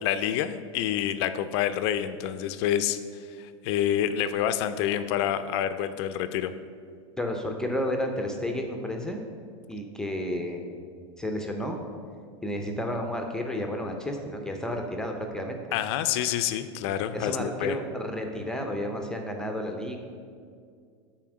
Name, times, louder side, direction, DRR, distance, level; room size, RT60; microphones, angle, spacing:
voice 1, 0.0-3.0 3.4-6.5 15.7-17.8, left 10 dB, 55° left, 11 dB, 0.4 m, -27 dB
voice 2, 7.2-9.2 9.7-10.7 11.2-11.8 12.4-15.8 17.1-20.0, left 1 dB, 5° left, 3 dB, 0.5 m, -31 dB
5.7 x 4.3 x 6.1 m, 2.2 s
supercardioid pair, 125°, 16 cm